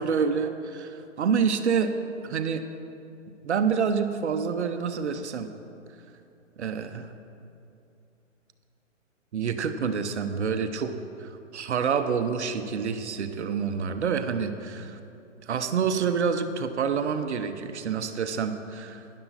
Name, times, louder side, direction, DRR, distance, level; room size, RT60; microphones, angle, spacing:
voice 1, 0.0-2.0 2.2-2.7 3.4-5.5 6.6-7.1 9.3-10.9 11.2-15.0 15.4-19.0, right 6 dB, 60° right, 8 dB, 0.8 m, -27 dB
12.0 x 11.0 x 4.1 m, 2.7 s
hypercardioid pair, 155°, 38 cm